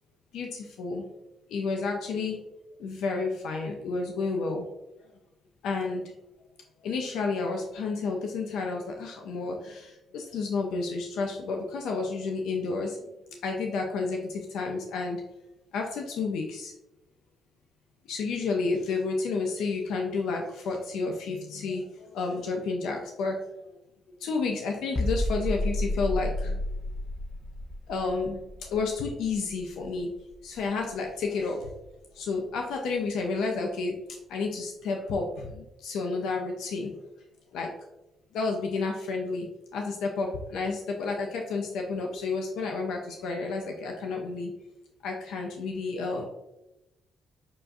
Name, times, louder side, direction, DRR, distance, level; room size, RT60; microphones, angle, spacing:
voice 1, 0.3-1.1 1.5-2.4 2.8-4.7 5.6-6.0 6.8-13.0 13.3-15.2 15.7-16.7 18.1-23.4 24.2-26.6 27.9-30.1 30.4-31.6 32.2-34.0 34.3-36.9 37.5-37.7 38.3-39.5 39.7-44.5 45.0-46.3, left 4 dB, 80° left, 2 dB, 0.5 m, -31 dB
sound 1, 25.0-30.7 30.9-31.2, left 1 dB, 20° left, 0.6 m, -32 dB
6.0 x 2.3 x 2.5 m, 0.92 s
supercardioid pair, 65°, 0 cm